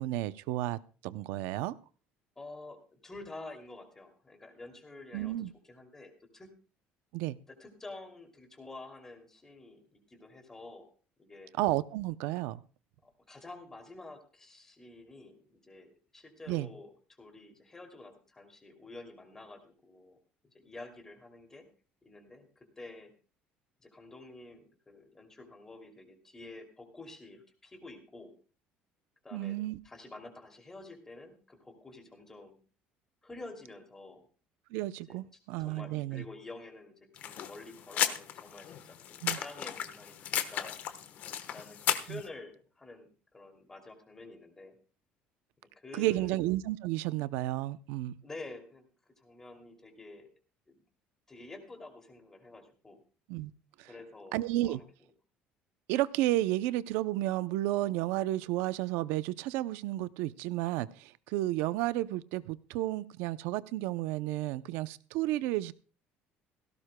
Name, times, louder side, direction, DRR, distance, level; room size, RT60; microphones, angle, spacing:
voice 1, 0.0-1.7 5.1-5.5 7.1-7.4 11.6-12.6 16.5-16.7 29.3-29.8 34.7-36.2 39.2-39.4 42.1-42.2 45.9-48.1 53.3-53.5 53.8-53.9 54.3-54.8 55.9-65.7, right 16 dB, 85° right, 0.6 m, -32 dB
voice 2, 2.4-5.4 5.6-6.5 7.5-10.9 11.2-11.5 13.0-16.9 17.2-20.2 20.5-21.7 22.0-23.1 23.8-28.3 29.2-29.6 29.8-32.6 33.2-34.2 35.1-35.2 35.6-40.8 41.5-44.8 45.7-46.4 48.2-48.9 49.2-50.3 50.7-50.8 51.3-53.0 53.8-54.8, left 2 dB, 15° left, 2.7 m, -49 dB
sound 1, 37.2-42.2, left 10 dB, 50° left, 1.2 m, -35 dB
17.5 x 16.5 x 2.2 m
cardioid pair, 160°, 4 cm